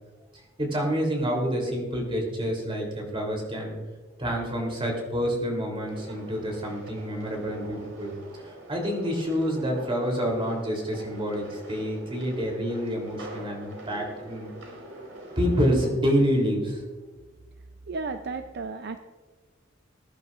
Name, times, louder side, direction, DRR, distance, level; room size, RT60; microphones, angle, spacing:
voice 1, 0.6-3.7 4.2-14.5 15.4-16.8, equal, 30° right, 0 dB, 3.2 m, -28 dB
sound 1, 5.9-15.9, right 1 dB, 80° right, 4.3 m, -44 dB
voice 2, 17.9-19.0, right 4 dB, 60° right, 8 dB, 0.5 m, -33 dB
20.5 x 11.0 x 2.5 m, 1.3 s
head